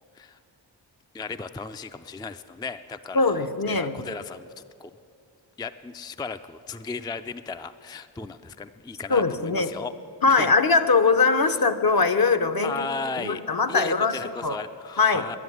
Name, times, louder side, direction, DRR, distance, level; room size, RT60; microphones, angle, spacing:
voice 1, 1.1-4.5 4.8-4.9 5.6-9.9 10.3-10.5 11.6-11.7 12.6-13.4 13.7-15.4, left 4 dB, 10° left, 9 dB, 0.4 m, -35 dB
voice 2, 3.1-3.9 9.1-9.7 10.2-12.9 13.2-14.6 15.0-15.2, left 4 dB, 50° left, 9 dB, 0.8 m, -21 dB
11.0 x 10.0 x 9.7 m, 2.4 s
cardioid pair, 50°, 45 cm